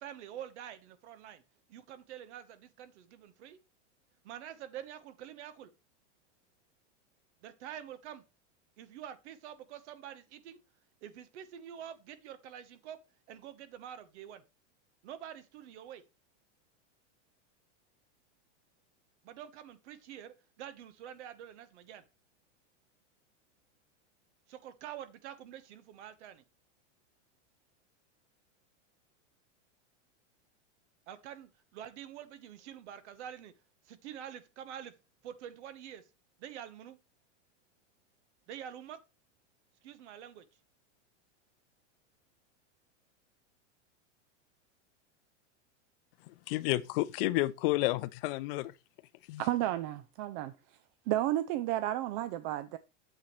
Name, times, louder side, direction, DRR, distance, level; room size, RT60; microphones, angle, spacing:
voice 1, 0.0-1.4 1.7-3.6 4.2-5.7 7.4-8.2 8.8-10.6 11.0-13.0 13.3-14.4 15.0-16.0 19.2-22.0 24.5-26.4 31.1-33.5 33.9-34.9 35.2-36.0 36.4-37.0 38.5-39.0 39.8-40.4, right 10 dB, 65° right, 1.3 m, -46 dB
voice 2, 46.2-48.8 49.2-49.4, left 18 dB, 50° left, 0.6 m, -31 dB
voice 3, 49.4-50.5 51.1-52.8, right 14 dB, 35° right, 0.4 m, -32 dB
8.8 x 7.3 x 3.2 m
supercardioid pair, 140°, 37 cm